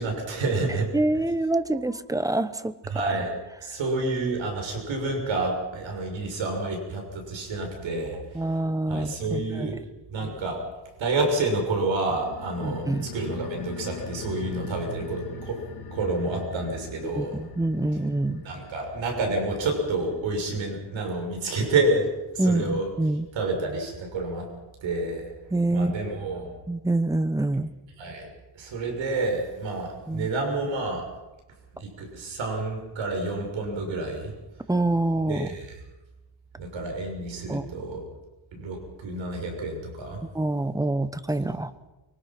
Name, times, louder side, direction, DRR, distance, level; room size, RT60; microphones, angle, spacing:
voice 1, 0.0-0.9 2.9-3.3 3.6-8.4 8.9-9.8 10.1-10.6 11.0-12.8 13.1-15.6 15.9-17.4 18.4-22.1 22.3-22.9 23.3-24.5 24.8-25.2 25.7-26.5 28.0-28.3 28.5-31.1 31.8-34.3 35.3-35.7 36.6-38.0 38.5-40.2, right 2 dB, 85° right, 3 dB, 6.5 m, -29 dB
voice 2, 0.9-2.7 3.0-3.1 8.3-9.8 12.6-13.1 17.2-18.4 22.4-23.3 25.5-26.1 26.7-27.7 30.1-30.3 34.7-35.5 37.5-37.7 40.3-41.7, right 2 dB, 10° right, 13 dB, 0.9 m, -26 dB
sound 1, 12.1-23.0 23.3-23.4, left 3 dB, 60° left, 2.5 m, -41 dB
24.0 x 23.5 x 6.0 m, 1.1 s
wide cardioid pair, 155°, 45 cm